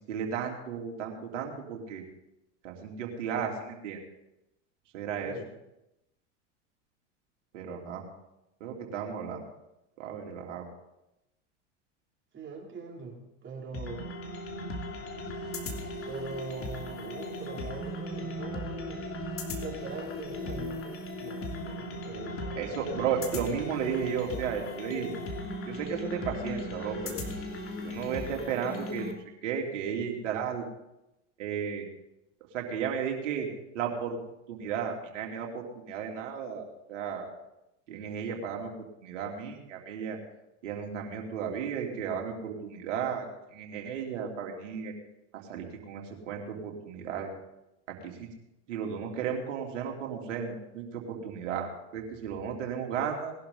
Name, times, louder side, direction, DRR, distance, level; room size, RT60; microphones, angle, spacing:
voice 1, 0.0-2.0 2.6-4.0 4.9-5.3 7.5-8.0 8.6-9.4 10.0-10.7 22.5-25.1 25.7-27.2 27.8-29.1 29.4-30.6 31.4-31.8 32.5-33.5 33.7-34.2 34.5-37.3 37.9-38.7 39.0-40.2 40.6-43.3 43.5-44.9 45.3-47.3 47.9-48.3 48.7-53.3, right 7 dB, 75° right, 1 dB, 3.2 m, -34 dB
voice 2, 12.3-14.1 16.1-19.0 19.6-22.6, right 4 dB, 30° right, 0 dB, 3.1 m, -42 dB
sound 1, 13.7-29.1, left 1 dB, 35° left, 3.1 m, -37 dB
20.0 x 11.5 x 4.0 m, 0.89 s
hypercardioid pair, 90°, 37 cm